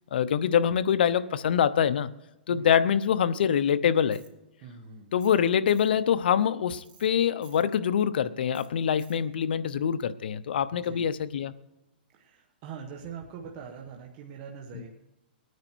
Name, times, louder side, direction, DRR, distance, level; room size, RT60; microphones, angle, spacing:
voice 1, 0.1-2.1 2.5-4.2 5.1-11.5 14.7-14.9, left 8 dB, 70° left, 14 dB, 0.8 m, -25 dB
Tools, 4.1-4.3 5.2-5.4 5.7-5.9 6.8-7.1 7.4-7.6 8.5-8.7 9.0-9.2, right 7 dB, 80° right, 2.9 m, -56 dB
voice 2, 4.6-5.1 10.7-11.1 12.1-14.9, right 6 dB, 35° right, 1 dB, 1.4 m, -43 dB
19.0 x 9.5 x 4.6 m, 0.95 s
hypercardioid pair, 155°, 5 cm